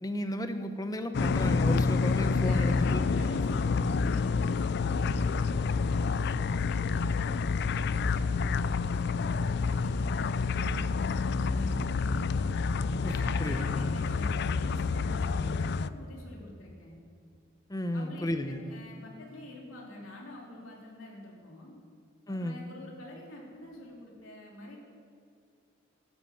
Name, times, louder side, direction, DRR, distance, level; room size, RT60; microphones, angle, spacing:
voice 1, 0.0-3.0 13.0-13.1 13.4-13.8 17.7-18.6 22.3-22.7, left 1 dB, 20° left, 8 dB, 0.9 m, -33 dB
sound 1, 1.1-15.9, left 4 dB, 55° left, 0.4 m, -28 dB
voice 2, 2.2-12.4 13.1-17.0 17.9-21.8 22.3-24.8, left 1 dB, 80° left, -2 dB, 3.7 m, -47 dB
12.0 x 11.0 x 8.7 m, 2.5 s
head